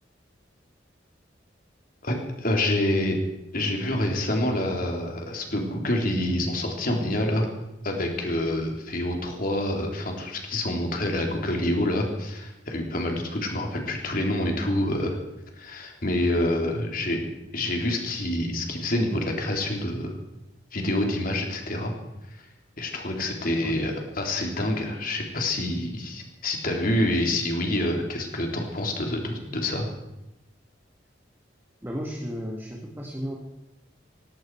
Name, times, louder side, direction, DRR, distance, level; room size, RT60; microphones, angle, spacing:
voice 1, 2.0-3.2 3.5-7.5 7.8-15.2 15.6-17.2 17.5-20.2 20.7-21.9 22.8-29.9, left 1 dB, 50° left, 2 dB, 3.2 m, -27 dB
voice 2, 31.8-33.4, equal, 10° right, -1 dB, 2.0 m, -34 dB
18.0 x 17.0 x 4.7 m, 0.92 s
head